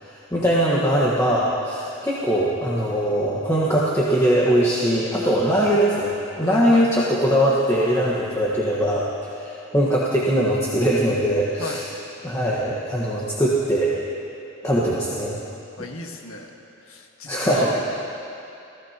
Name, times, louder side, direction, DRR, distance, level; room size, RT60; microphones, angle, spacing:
voice 1, 0.0-11.8 12.2-14.1 14.6-15.4 17.3-17.7, equal, 15° left, -6 dB, 1.4 m, -21 dB
voice 2, 6.4-7.1 11.6-11.9 15.8-16.5 16.8-17.8, left 2 dB, 90° left, 2 dB, 1.6 m, -34 dB
29.5 x 16.0 x 3.0 m, 2.8 s
head